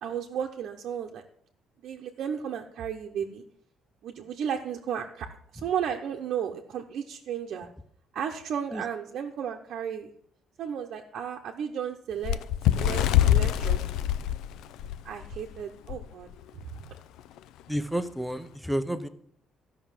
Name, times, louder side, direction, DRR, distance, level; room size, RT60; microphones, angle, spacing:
voice 1, 0.0-1.2 1.8-3.4 4.0-5.3 5.6-7.7 8.1-10.1 10.6-12.4 12.8-13.8 15.0-16.3, right 8 dB, 55° right, 1 dB, 0.9 m, -34 dB
Bird, 12.2-15.4 15.9-16.1 16.3-16.6 17.4-17.5, left 11 dB, 80° left, 0.5 m, -24 dB
voice 2, 17.7-19.1, right 1 dB, ahead, 11 dB, 0.6 m, -30 dB
13.5 x 5.8 x 7.3 m, 0.64 s
cardioid pair, 170°, 0 cm